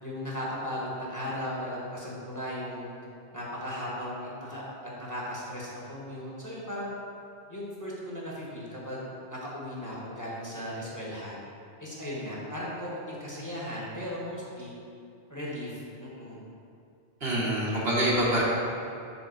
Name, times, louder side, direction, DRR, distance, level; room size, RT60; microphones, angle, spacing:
voice 1, 0.0-2.9 3.3-4.6 5.0-7.0 7.5-9.0 9.3-11.4 11.8-14.7 15.3-16.4, equal, 15° left, -6 dB, 1.4 m, -36 dB
voice 2, 17.2-18.4, right 1 dB, 70° right, -7 dB, 1.9 m, -25 dB
6.9 x 3.8 x 6.4 m, 2.6 s
omnidirectional pair, 1.1 m